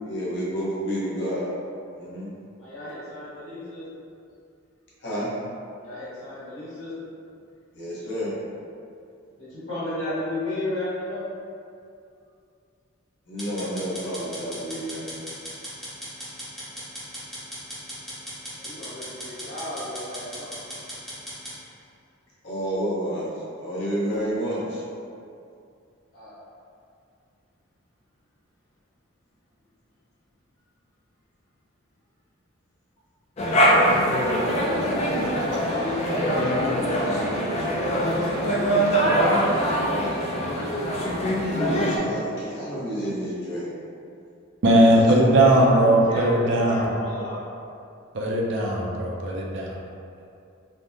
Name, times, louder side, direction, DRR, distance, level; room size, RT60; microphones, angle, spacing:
voice 1, 0.0-1.5 2.0-2.3 5.0-5.3 7.7-8.4 13.3-15.2 22.4-23.3 23.6-24.8 41.5-43.7 44.8-45.1 45.3-45.6, equal, 55° left, -8 dB, 0.9 m, -29 dB
voice 2, 2.6-3.8 5.8-6.9 9.4-11.3 18.6-20.5 26.1-26.4 35.0-38.9 45.5-47.4, left 1 dB, 75° left, -11 dB, 1.4 m, -34 dB
sound 1, 13.4-21.6, equal, ahead, 0.7 m, -37 dB
sound 2, 33.4-42.0, equal, 30° left, 0.3 m, -23 dB
voice 3, 44.6-46.9 48.1-49.8, right 1 dB, 60° right, -2 dB, 0.4 m, -19 dB
3.4 x 2.1 x 2.6 m, 2.5 s
head